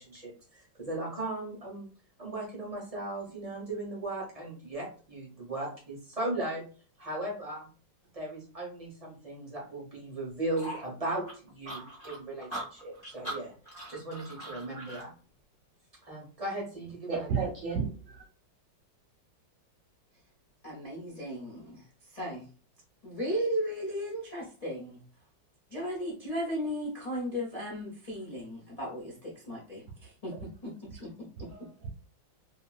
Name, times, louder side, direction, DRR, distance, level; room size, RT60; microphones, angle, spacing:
voice 1, 0.0-1.9 2.2-6.6 7.0-7.7 8.1-13.5 13.9-15.1 16.0-17.3, right 2 dB, 30° right, -3 dB, 0.7 m, -37 dB
sound 1, 10.6-15.1, right 1 dB, 15° left, 1.0 m, -41 dB
voice 2, 17.1-18.2 31.4-31.9, right 5 dB, 55° right, -1 dB, 0.9 m, -33 dB
voice 3, 20.6-22.5 23.0-25.0 25.7-30.3 30.6-31.5, equal, 75° left, -5 dB, 0.3 m, -36 dB
2.8 x 2.8 x 2.3 m, 0.39 s
omnidirectional pair, 2.1 m